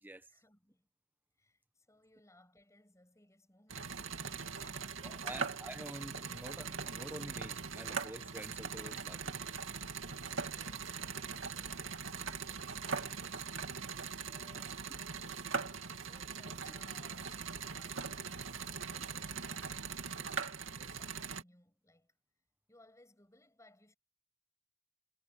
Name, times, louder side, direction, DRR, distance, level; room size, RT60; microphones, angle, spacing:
voice 1, 0.3-0.9 1.4-5.5 9.9-13.4 14.2-15.0 16.0-18.5 18.8-22.2 22.7-24.0, left 1 dB, 15° left, 7.7 m, -65 dB
sound 1, 3.7-21.4, right 5 dB, 65° right, 2.6 m, -41 dB
voice 2, 5.0-9.4, right 1 dB, 10° right, 1.2 m, -48 dB
head